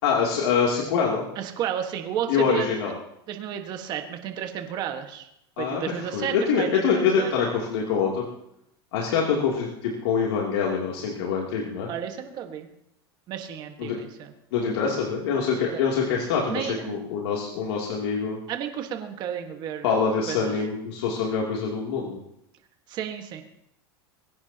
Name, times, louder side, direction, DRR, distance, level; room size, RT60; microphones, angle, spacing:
voice 1, 0.0-1.2 2.3-2.9 5.6-5.8 6.1-8.2 8.9-11.9 13.8-14.0 14.5-18.4 19.8-22.2, left 6 dB, 80° left, -3 dB, 3.0 m, -25 dB
voice 2, 1.3-2.7 3.3-5.3 5.6-7.4 11.9-12.7 13.3-14.3 15.6-15.8 16.5-17.0 18.5-20.0 20.3-20.5 22.9-23.4, right 9 dB, 35° right, 5 dB, 1.6 m, -32 dB
22.0 x 17.0 x 3.0 m, 0.78 s
supercardioid pair, 165°, 13 cm